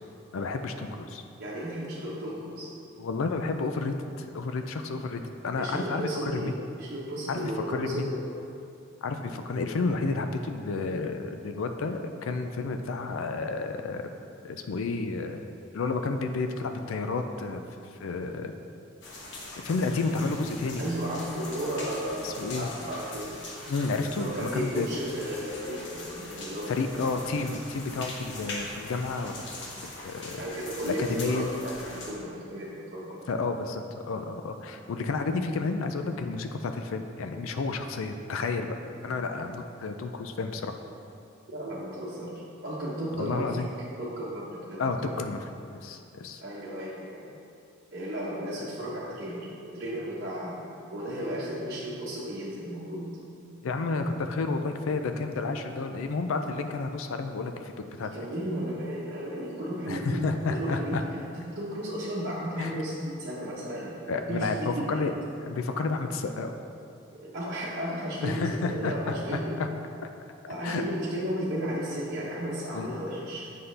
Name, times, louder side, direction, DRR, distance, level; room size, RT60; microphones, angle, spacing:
voice 1, 0.3-1.2 3.0-6.5 7.3-8.1 9.0-14.0 14.4-15.4 15.7-17.6 17.9-18.5 19.6-20.8 22.2-22.7 23.7-24.9 26.7-29.6 30.0-30.4 30.8-31.5 33.3-38.8 39.0-40.7 43.2-43.7 44.8-45.4 45.8-46.4 53.6-58.1 59.9-61.0 62.6-62.8 64.1-65.1 65.4-66.5 68.2-69.7 70.6-70.8 72.7-72.9, left 3 dB, 80° left, 6 dB, 0.4 m, -31 dB
voice 2, 1.4-2.7 5.6-8.2 20.8-23.4 24.1-26.9 30.4-33.2 41.5-43.7 44.0-45.1 46.4-47.3 47.9-50.6 50.9-53.2 58.0-61.0 61.4-65.0 67.1-69.6 70.5-73.6, equal, 50° right, -8 dB, 1.0 m, -34 dB
sound 1, 19.0-32.1, left 2 dB, 55° left, 1.1 m, -42 dB
7.9 x 5.5 x 3.3 m, 2.6 s
head